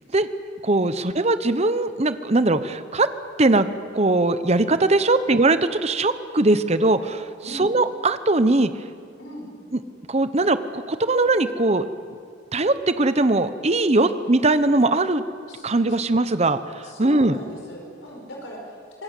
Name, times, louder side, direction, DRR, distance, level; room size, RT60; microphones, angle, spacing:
voice 1, 0.6-3.1 3.4-3.7 3.9-7.3 7.6-8.7 10.1-11.8 12.5-15.2 15.6-17.4, right 2 dB, 35° right, 12 dB, 0.9 m, -20 dB
voice 2, 15.5-16.0 16.8-19.0, equal, 90° left, 0 dB, 5.2 m, -39 dB
25.5 x 19.5 x 8.4 m, 2.3 s
head